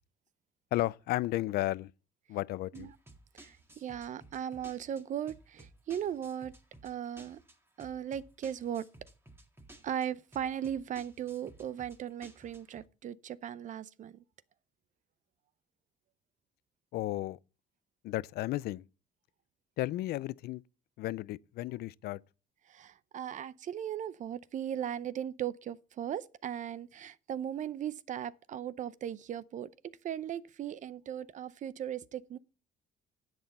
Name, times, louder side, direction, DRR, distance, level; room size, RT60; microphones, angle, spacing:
voice 1, 0.7-1.9 2.3-2.9 16.9-17.4 18.0-18.8 19.8-20.6 21.0-22.2, left 16 dB, 70° left, 0.4 m, -33 dB
sound 1, 2.7-12.8, right 2 dB, 15° right, 1.8 m, -56 dB
voice 2, 3.3-6.5 6.8-7.4 7.8-8.9 9.8-14.2 22.7-32.4, right 9 dB, 50° right, 0.6 m, -38 dB
10.5 x 8.0 x 4.2 m
cardioid pair, 110°, 17 cm